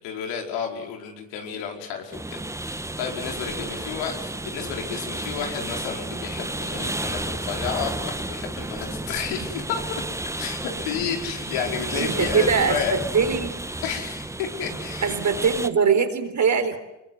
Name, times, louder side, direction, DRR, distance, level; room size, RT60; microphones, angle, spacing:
voice 1, 0.0-10.0 10.4-13.0 13.8-15.2, left 7 dB, 85° left, 3 dB, 5.0 m, -31 dB
sound 1, 2.1-15.7, right 2 dB, 5° right, 1.2 m, -32 dB
voice 2, 11.9-12.8 13.1-13.5 15.0-16.8, right 6 dB, 40° right, 8 dB, 4.0 m, -21 dB
24.5 x 23.0 x 7.9 m, 0.90 s
supercardioid pair, 90°, 43 cm